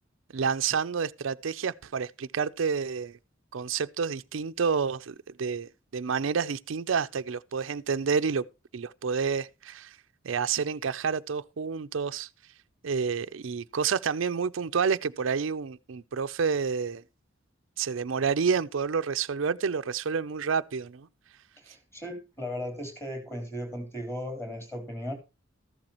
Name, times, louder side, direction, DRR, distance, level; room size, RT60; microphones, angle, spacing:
voice 1, 0.3-3.2 3.5-8.4 8.7-10.0 10.2-12.3 12.8-17.0 17.8-21.1, right 6 dB, 75° right, 0.5 m, -29 dB
voice 2, 21.6-25.1, equal, 15° left, 3.6 m, -36 dB
14.0 x 12.0 x 2.9 m
head